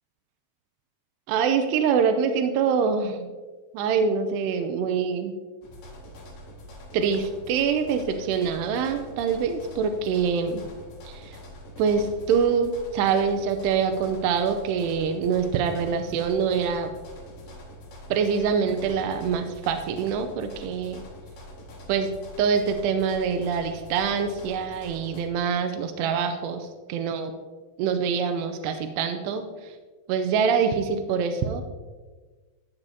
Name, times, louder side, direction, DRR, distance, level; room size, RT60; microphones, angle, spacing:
voice 1, 1.3-3.3 3.7-5.3 6.9-10.6 11.1-11.4 11.8-16.9 18.1-21.0 21.9-22.1 22.4-27.3 27.8-29.7 30.1-31.6, right 6 dB, 90° right, 7 dB, 2.7 m, -25 dB
sound 1, 5.6-25.2, equal, 70° left, 3.5 m, -44 dB
14.0 x 8.2 x 2.7 m, 1.4 s
omnidirectional pair, 4.7 m